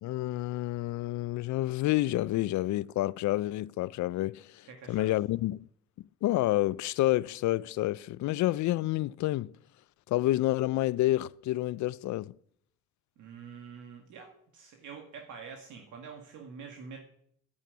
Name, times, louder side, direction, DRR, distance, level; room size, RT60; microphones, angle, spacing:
voice 1, 0.0-5.7 6.2-9.5 10.1-12.3, left 16 dB, 70° left, 0.5 m, -29 dB
voice 2, 4.7-5.2 13.2-17.0, right 6 dB, 80° right, 2.1 m, -46 dB
10.5 x 9.9 x 8.2 m
cardioid pair, 90°, 30 cm